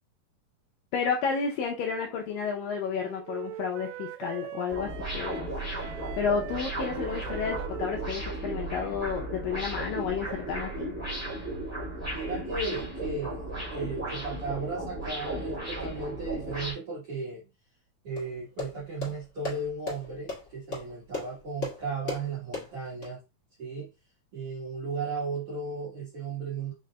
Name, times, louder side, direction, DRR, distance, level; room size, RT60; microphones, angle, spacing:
voice 1, 0.9-5.5 6.2-10.9, left 6 dB, 80° left, 2.0 m, -31 dB
Wind instrument woodwind instrument, 1.8-9.8, right 11 dB, 80° right, 2.5 m, -43 dB
sound 1, 4.7-16.7, right 1 dB, 5° right, 1.3 m, -35 dB
voice 2, 12.1-17.4 18.0-23.2 23.6-23.9 24.3-26.7, right 4 dB, 55° right, 1.6 m, -35 dB
sound 2, 18.2-23.1, left 3 dB, 35° left, 1.1 m, -38 dB
5.6 x 3.9 x 2.2 m
omnidirectional pair, 4.6 m